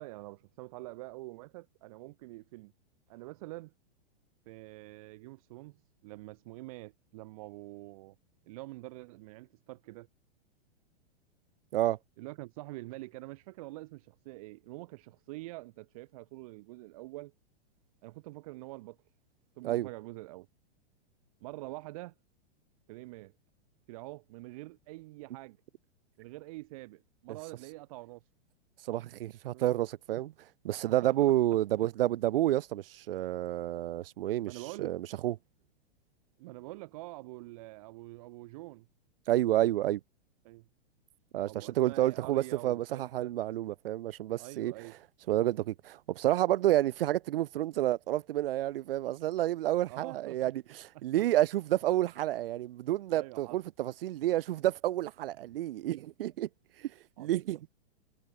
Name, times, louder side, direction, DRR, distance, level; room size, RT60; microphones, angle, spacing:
voice 1, 0.0-2.7 3.1-3.7 4.4-8.1 8.4-10.1 12.2-17.3 18.0-19.0 19.6-20.5 21.4-22.1 22.9-23.3 23.9-25.6 26.2-28.3 29.4-29.7 31.0-31.1 34.4-34.9 36.4-38.9 40.4-40.6 41.4-43.3 44.4-44.9 49.9-50.5 53.1-53.6 57.2-57.3, right 20 dB, 35° right, 1.7 m, -46 dB
voice 2, 28.9-30.3 30.6-34.5 34.8-35.3 39.3-40.0 41.3-44.7 45.3-50.6 51.0-56.5 57.2-57.6, right 14 dB, 60° right, 0.6 m, -29 dB
supercardioid pair, 175°, 32 cm